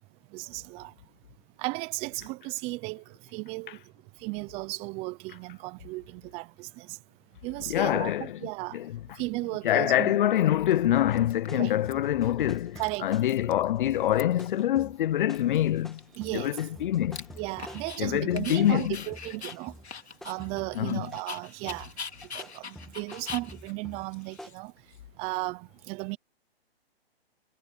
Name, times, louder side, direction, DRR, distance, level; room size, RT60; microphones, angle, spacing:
voice 1, 0.3-0.9 1.6-3.0 3.3-3.8 4.2-7.0 7.4-8.8 9.2-10.1 11.5-11.7 12.8-13.1 16.2-16.6 17.4-19.7 20.2-21.9 22.3-24.7 25.2-26.2, right 24 dB, 20° right, 0.7 m, -35 dB
voice 2, 7.7-9.0 9.6-16.0 16.3-17.2 18.0-19.0 20.8-21.1, left 12 dB, 50° left, 0.7 m, -25 dB
Dog, 9.6-9.7 10.4-10.8 11.2-11.9 12.2-12.3 12.6-13.6 13.9-14.6 14.9-15.0 15.3-18.0 18.4-25.0, left 6 dB, 85° left, 3.6 m, -43 dB
sound 1, 11.0-18.8 19.1-21.3 21.7-24.5, left 1 dB, ahead, 2.3 m, -48 dB
hypercardioid pair, 140°, 32 cm